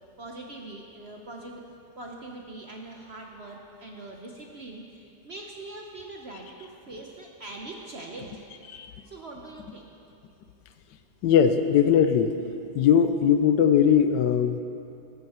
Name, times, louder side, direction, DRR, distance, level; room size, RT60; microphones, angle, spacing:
voice 1, 0.2-1.7 2.0-8.4 9.0-9.9, right 2 dB, 45° right, 1 dB, 0.9 m, -42 dB
voice 2, 11.2-12.3 12.7-14.6, left 8 dB, 75° left, 9 dB, 1.2 m, -20 dB
14.5 x 13.0 x 4.3 m, 2.7 s
omnidirectional pair, 2.0 m